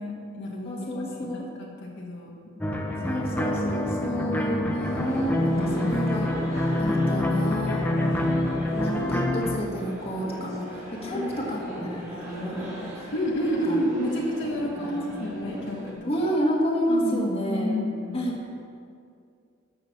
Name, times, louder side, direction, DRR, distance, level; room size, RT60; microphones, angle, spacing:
voice 1, 0.0-2.6 2.9-3.2 5.6-6.1 7.8-8.9 11.2-11.6 13.1-16.1 16.9-18.3, equal, 55° left, -2 dB, 1.5 m, -31 dB
voice 2, 0.7-1.4 3.1-6.3 6.8-7.8 8.7-13.1 13.7-13.8 14.8-15.3 16.0-17.7 18.1-18.3, equal, 30° left, -2 dB, 1.8 m, -30 dB
sound 1, 2.6-9.6, left 1 dB, 10° left, 0.9 m, -26 dB
sound 2, 4.8-15.9, equal, 15° right, 2.8 m, -38 dB
13.0 x 6.5 x 7.3 m, 2.4 s
head